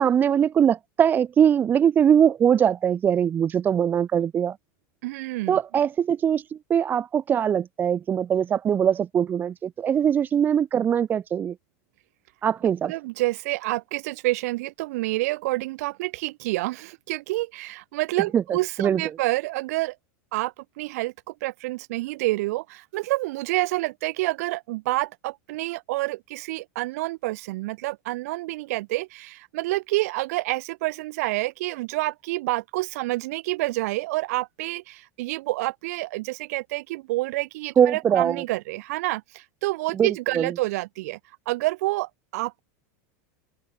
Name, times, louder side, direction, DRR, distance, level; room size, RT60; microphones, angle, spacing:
voice 1, 0.0-4.6 5.5-11.6 12.4-12.9 18.3-18.4 18.8-19.0 37.8-38.4 39.9-40.5, right 8 dB, 20° right, 2.2 m, -21 dB
voice 2, 5.0-5.6 12.8-20.0 20.3-41.2 41.5-42.6, right 20 dB, 65° right, 7.5 m, -28 dB
open air
supercardioid pair, 155°, 9 cm